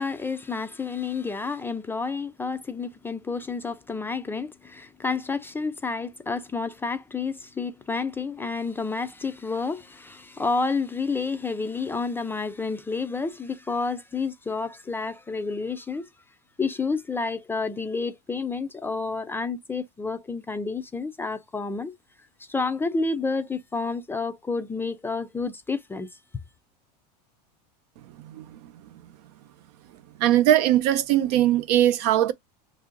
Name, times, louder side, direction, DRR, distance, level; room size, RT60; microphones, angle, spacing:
voice 1, 0.0-16.1 16.6-22.0 22.5-26.1, left 4 dB, 10° left, 0.4 m, -30 dB
voice 2, 28.2-29.0 30.2-32.3, right 12 dB, 70° right, 0.7 m, -21 dB
3.0 x 2.6 x 3.7 m
supercardioid pair, 125°, 21 cm